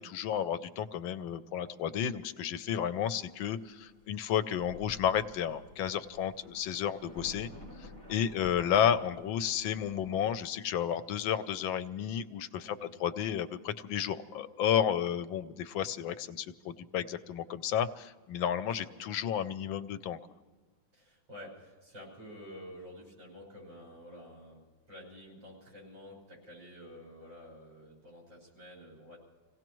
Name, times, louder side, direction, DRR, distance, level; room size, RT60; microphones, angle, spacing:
voice 1, 0.0-7.5 7.8-20.2, left 9 dB, 85° left, 12 dB, 1.5 m, -32 dB
Thunder, 4.6-10.4, left 2 dB, 30° right, 4.3 m, -51 dB
voice 2, 18.6-18.9 20.9-24.6 24.9-29.2, equal, 70° right, -2 dB, 6.3 m, -50 dB
27.0 x 17.0 x 3.1 m, 1.3 s
omnidirectional pair, 2.1 m